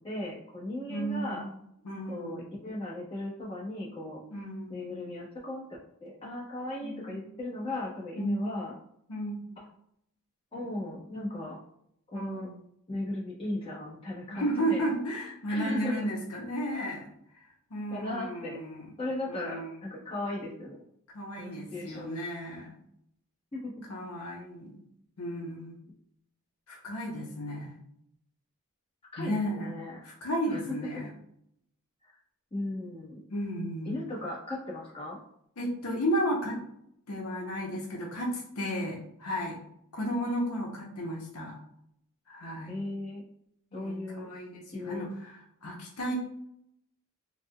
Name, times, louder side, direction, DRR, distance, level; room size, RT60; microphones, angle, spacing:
voice 1, 0.0-1.5 2.1-4.2 4.7-5.6 6.0-8.7 9.6-9.7 10.5-11.6 12.1-12.5 12.9-14.9 15.5-16.1 17.9-18.6 19.0-20.8 21.4-22.1 23.5-23.7 29.1-30.0 30.5-30.8 32.0-32.1 32.5-33.2 33.8-35.2 42.7-43.2 43.7-44.3 44.7-45.1, left 1 dB, 25° left, -6 dB, 1.0 m, -36 dB
voice 2, 0.9-1.5 1.8-2.5 4.3-4.8 6.8-7.2 8.2-8.5 9.1-9.4 12.1-12.6 14.3-17.1 17.7-18.9 19.3-19.7 21.1-22.8 23.9-24.8 25.2-25.8 26.7-27.7 29.2-29.7 30.0-31.1 33.3-34.0 35.6-36.6 37.1-39.6 39.9-41.6 42.3-42.8 43.7-46.1, equal, 85° left, -1 dB, 0.7 m, -33 dB
4.1 x 2.1 x 2.2 m, 0.71 s
head